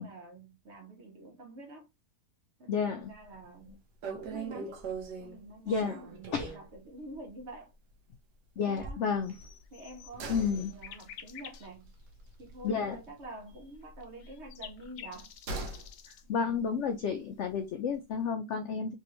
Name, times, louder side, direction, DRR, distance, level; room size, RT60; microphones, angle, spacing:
voice 1, 0.0-1.9 2.6-4.8 5.2-7.7 8.6-9.0 9.7-11.9 12.4-15.4 16.3-16.8, right 1 dB, 50° right, 1.0 m, -48 dB
voice 2, 2.7-3.1 5.7-6.0 6.3-6.6 8.6-9.3 10.3-10.7 12.6-13.0 16.3-18.9, left 6 dB, 70° left, 0.7 m, -31 dB
sound 1, 3.1-3.4 3.7-3.8 4.0-6.7 7.1-7.3 7.5-7.6 9.3-13.2 13.5-15.9 16.2-16.3, right 4 dB, 90° right, 1.4 m, -42 dB
sound 2, 6.2-6.7 8.0-8.1 8.7-9.3, right 1 dB, 10° right, 0.6 m, -45 dB
sound 3, 9.2-11.7 12.3-12.4 13.8-16.3, left 10 dB, 90° left, 1.2 m, -50 dB
3.4 x 3.2 x 2.9 m
omnidirectional pair, 1.7 m